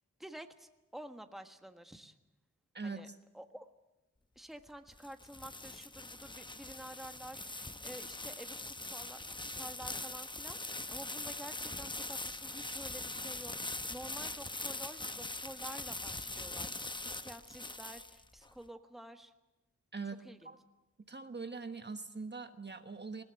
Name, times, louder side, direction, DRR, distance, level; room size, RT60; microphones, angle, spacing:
voice 1, 0.2-2.1 2.8-3.1 3.3-3.7 4.3-16.7 17.0-19.3 20.2-20.5, right 1 dB, ahead, 7 dB, 1.5 m, -50 dB
voice 2, 2.7-3.2 19.9-20.6 21.1-23.2, right 4 dB, 35° right, 8 dB, 1.3 m, -42 dB
sound 1, 4.7-18.5, left 2 dB, 15° left, 0.9 m, -42 dB
20.0 x 17.5 x 9.0 m, 1.0 s
cardioid pair, 75°, 30 cm